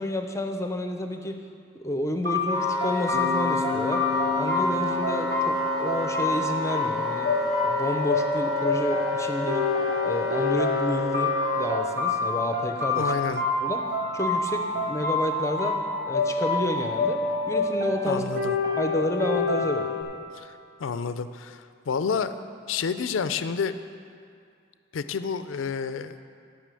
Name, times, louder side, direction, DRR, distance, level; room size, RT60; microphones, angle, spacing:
voice 1, 0.0-1.4 1.7-4.0 4.4-7.3 7.6-9.6 10.0-13.1 13.6-13.8 14.1-18.2 18.8-19.9, left 1 dB, 15° left, 5 dB, 0.6 m, -30 dB
sound 1, 2.2-20.0, left 3 dB, 65° right, 2.8 m, -27 dB
Wind instrument woodwind instrument, 2.5-11.8, left 2 dB, 20° right, 1.4 m, -31 dB
Bass guitar, 3.1-7.2, left 3 dB, 90° right, 1.2 m, -34 dB
voice 2, 13.0-13.4 18.1-18.6 20.3-22.3 22.7-23.7 24.9-26.2, left 6 dB, 85° left, 11 dB, 0.4 m, -29 dB
13.5 x 5.7 x 7.6 m, 2.3 s
head